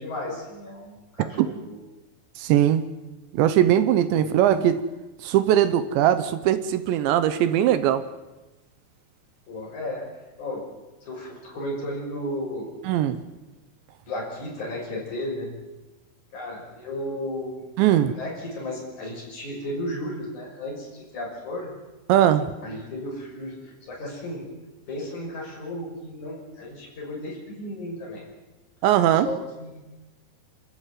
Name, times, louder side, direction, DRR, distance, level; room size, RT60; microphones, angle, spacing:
voice 1, 0.0-1.8 4.2-4.3 9.5-10.1 10.4-10.7 11.0-12.7 14.1-15.5 16.3-17.6 17.9-21.7 22.6-24.5 24.9-28.2 29.1-29.8, left 1 dB, 40° left, -1 dB, 7.2 m, -34 dB
voice 2, 2.4-2.8 3.3-4.8 5.2-8.0 12.9-13.2 17.8-18.1 22.1-22.5 28.8-29.3, right 11 dB, 80° right, 12 dB, 3.1 m, -20 dB
29.0 x 13.5 x 9.2 m, 1.1 s
omnidirectional pair, 5.3 m